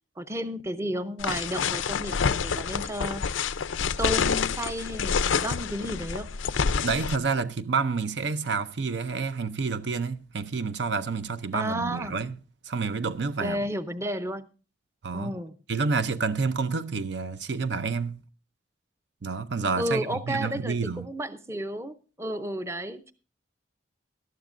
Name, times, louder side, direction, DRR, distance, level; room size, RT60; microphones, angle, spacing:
voice 1, 0.2-3.4 4.0-6.3 11.5-12.2 13.4-14.5 15.1-15.5 19.8-23.1, equal, 15° right, 0.6 m, -32 dB
sound 1, 1.2-7.2, left 6 dB, 90° left, 0.5 m, -28 dB
voice 2, 6.7-12.4 12.6-13.6 15.0-15.3 15.7-18.2 19.2-21.1, right 4 dB, 65° right, 0.6 m, -29 dB
19.0 x 12.5 x 2.5 m
head